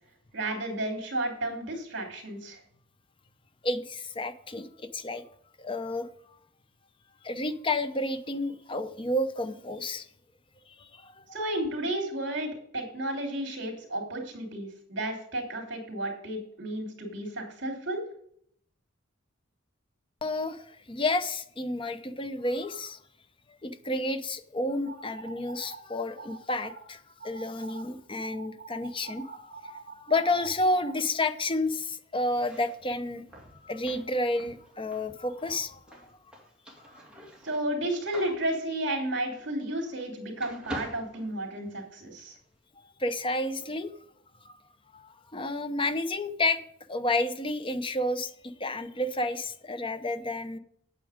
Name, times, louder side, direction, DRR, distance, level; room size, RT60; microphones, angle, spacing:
voice 1, 0.3-2.6 11.3-18.0 37.4-42.3, right 1 dB, 60° right, 2 dB, 3.1 m, -32 dB
voice 2, 3.6-5.2 5.6-6.1 7.2-10.0 10.8-11.2 20.2-23.0 23.6-33.2 33.6-35.8 43.0-43.9 44.9-46.6 46.9-50.6, left 2 dB, 25° left, 10 dB, 0.7 m, -30 dB
sound 1, 24.9-25.8 26.2-26.8 27.2-27.8 28.2-30.9, right 5 dB, 40° right, 1.1 m, -44 dB
sound 2, 32.3-40.1 40.4-42.0, equal, 5° right, 2.3 m, -46 dB
8.7 x 8.3 x 5.0 m, 0.65 s
head